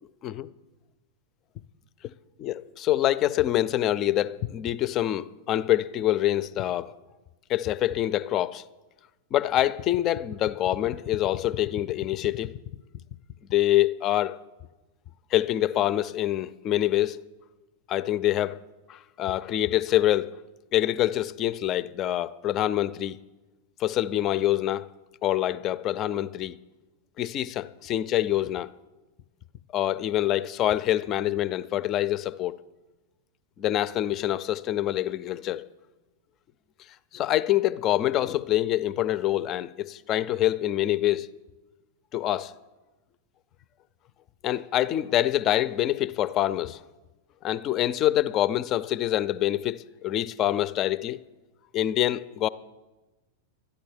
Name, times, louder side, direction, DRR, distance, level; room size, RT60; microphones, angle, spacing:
voice 1, 2.4-6.9 7.5-8.6 9.3-12.5 13.5-14.4 15.3-17.2 17.9-18.6 18.9-20.4 20.7-23.2 23.8-24.9 25.2-26.6 27.2-28.7 29.7-32.6 33.6-35.7 37.1-41.3 42.1-42.5 44.4-46.8 47.4-51.2 51.7-52.5, left 13 dB, 35° left, 0.4 m, -25 dB
12.5 x 10.5 x 7.1 m
figure-of-eight pair, 90°, 0 cm